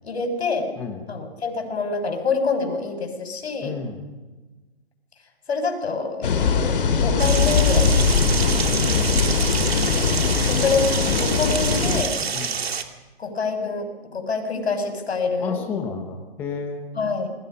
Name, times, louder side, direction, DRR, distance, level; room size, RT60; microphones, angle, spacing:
voice 1, 0.0-0.7 1.1-3.8 5.5-8.1 9.8-12.2 13.2-15.6 16.9-17.3, left 4 dB, 75° left, 5 dB, 6.5 m, -26 dB
voice 2, 3.6-4.0 12.3-12.6 15.4-16.9, left 5 dB, 5° left, 3 dB, 1.1 m, -31 dB
sound 1, 6.2-12.0, left 5 dB, 55° left, 3.1 m, -21 dB
sound 2, 7.2-12.8, right 6 dB, 70° right, 2.8 m, -27 dB
29.0 x 22.0 x 5.5 m, 1.2 s
hypercardioid pair, 180°, 32 cm